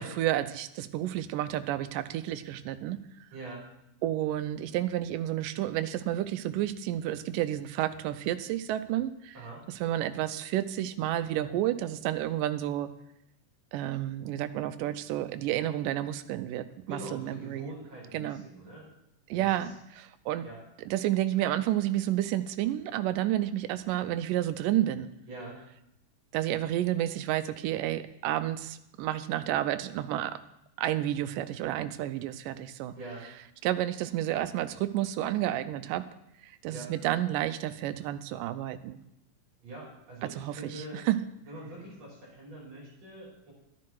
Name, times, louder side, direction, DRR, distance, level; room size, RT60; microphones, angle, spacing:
voice 1, 0.0-3.0 4.0-9.3 9.8-12.9 13.7-17.7 18.1-18.4 19.3-20.5 20.9-25.1 26.3-30.4 30.8-32.9 33.6-36.0 36.4-39.0 40.2-41.2, right 13 dB, 90° right, 12 dB, 2.2 m, -30 dB
voice 2, 3.3-3.6 9.3-9.6 16.9-18.9 19.3-19.7 20.4-20.6 25.3-25.6 32.9-33.3 36.7-36.9 39.6-41.0 41.4-43.5, right 1 dB, 50° right, -5 dB, 6.5 m, -44 dB
11.5 x 10.5 x 4.7 m, 0.82 s
omnidirectional pair, 3.7 m